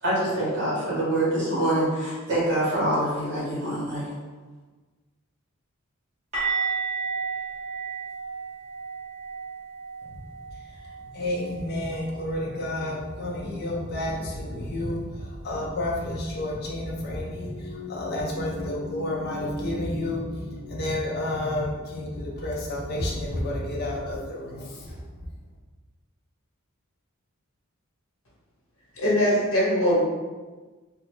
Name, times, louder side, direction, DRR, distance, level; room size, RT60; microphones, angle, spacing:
voice 1, 0.0-4.1, right 1 dB, 50° right, -8 dB, 1.4 m, -25 dB
sound 1, 6.3-12.1 12.4-12.6 12.9-13.1 16.3-16.4, right 5 dB, 30° right, 1.2 m, -33 dB
voice 2, 11.1-25.0, left 1 dB, 45° left, -2 dB, 0.4 m, -30 dB
voice 3, 28.9-30.0, equal, 65° left, -6 dB, 1.0 m, -21 dB
2.9 x 2.3 x 3.1 m, 1.3 s
head